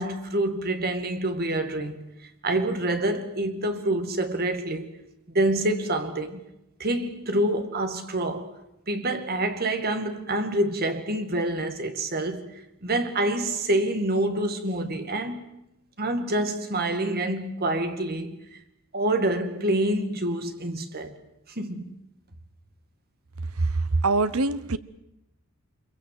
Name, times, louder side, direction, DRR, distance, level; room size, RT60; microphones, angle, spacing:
voice 1, 0.0-2.1 2.4-4.9 5.3-6.4 6.8-8.5 8.9-12.5 12.8-15.5 16.0-18.4 18.9-21.2 21.6-21.9, right 1 dB, 45° right, 2.3 m, -27 dB
voice 2, 23.6-24.8, right 3 dB, 75° right, 1.0 m, -24 dB
25.5 x 23.0 x 7.8 m
head